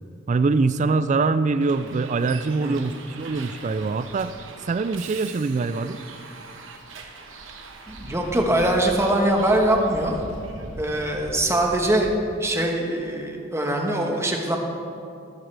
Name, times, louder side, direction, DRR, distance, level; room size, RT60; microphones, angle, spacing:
voice 1, 0.3-4.3 4.7-6.0, right 4 dB, 40° right, 13 dB, 0.3 m, -23 dB
Bus, 1.6-12.1, right 2 dB, 80° right, 1.2 m, -41 dB
voice 2, 2.6-2.9 7.9-10.2 10.8-12.1 12.4-14.6, right 1 dB, 15° right, 1 dB, 1.3 m, -22 dB
14.0 x 13.0 x 3.4 m, 2.5 s
head